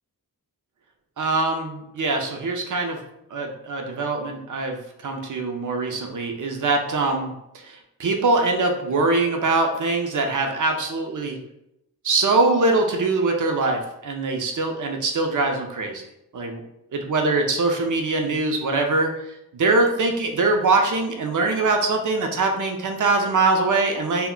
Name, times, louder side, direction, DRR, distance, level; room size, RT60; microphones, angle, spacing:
voice 1, 1.2-3.0 3.3-4.8 5.0-7.3 7.6-11.4 12.0-16.0 16.3-16.6 16.9-24.3, right 3 dB, 50° right, 3 dB, 0.6 m, -23 dB
2.2 x 2.1 x 3.7 m, 0.84 s
cardioid pair, 45°, 38 cm